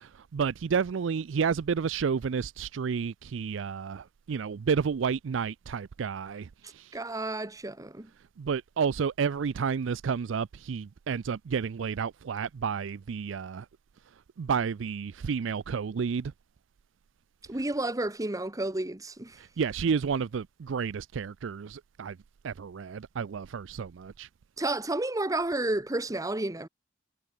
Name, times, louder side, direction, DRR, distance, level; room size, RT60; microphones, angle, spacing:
voice 1, 0.0-6.5 6.7-6.9 8.4-13.7 14.4-16.3 19.4-22.2 22.4-24.3, right 6 dB, 70° right, 0.4 m, -31 dB
voice 2, 6.9-8.1 17.5-19.4 24.6-26.7, right 2 dB, 20° right, 1.1 m, -31 dB
head